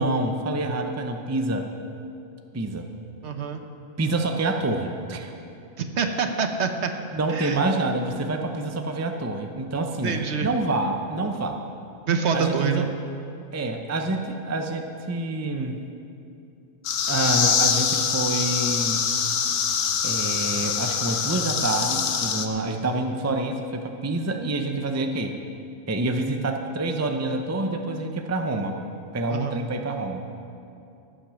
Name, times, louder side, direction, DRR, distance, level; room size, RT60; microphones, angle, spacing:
voice 1, 0.0-1.7 2.5-2.9 4.0-5.3 7.1-11.6 12.3-12.9 13.5-15.8 17.1-19.1 20.0-25.3 25.9-28.8 29.1-30.2, right 2 dB, 15° right, 4 dB, 0.6 m, -27 dB
voice 2, 3.2-3.6 5.8-6.9 7.3-7.6 10.0-10.5 12.1-12.9 29.3-29.6, right 6 dB, 60° right, 6 dB, 1.1 m, -26 dB
sound 1, 16.8-22.5, left 7 dB, 70° left, 1.1 m, -24 dB
15.0 x 9.0 x 6.4 m, 2.6 s
omnidirectional pair, 1.4 m